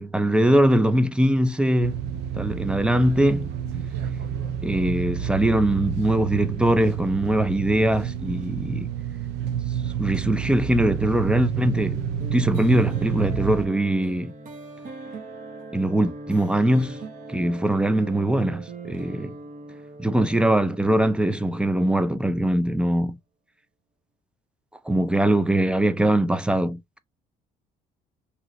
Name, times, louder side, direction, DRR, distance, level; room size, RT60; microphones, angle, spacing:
voice 1, 0.0-2.0 2.3-3.6 4.6-8.9 10.0-12.0 12.3-14.3 15.7-17.0 17.3-19.4 20.0-23.2 24.9-27.0, right 1 dB, 5° right, 0.3 m, -22 dB
sound 1, 1.8-13.7, right 8 dB, 85° right, 0.5 m, -29 dB
sound 2, 12.2-22.8, right 3 dB, 55° right, 1.2 m, -40 dB
3.0 x 2.8 x 2.9 m
cardioid pair, 110°, 17 cm